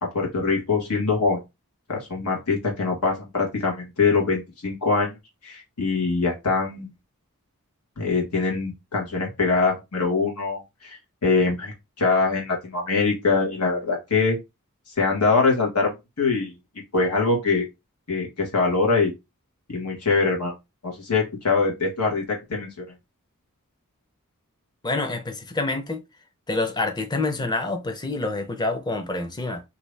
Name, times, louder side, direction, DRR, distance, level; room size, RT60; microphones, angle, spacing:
voice 1, 0.0-1.4 1.9-5.2 5.4-6.9 8.0-14.4 15.0-16.5 16.9-17.7 18.1-19.1 19.7-20.5 20.8-22.7, left 4 dB, 85° left, 1.4 m, -23 dB
voice 2, 24.8-26.0 26.5-29.6, left 2 dB, 20° left, 0.6 m, -27 dB
2.8 x 2.6 x 3.2 m
head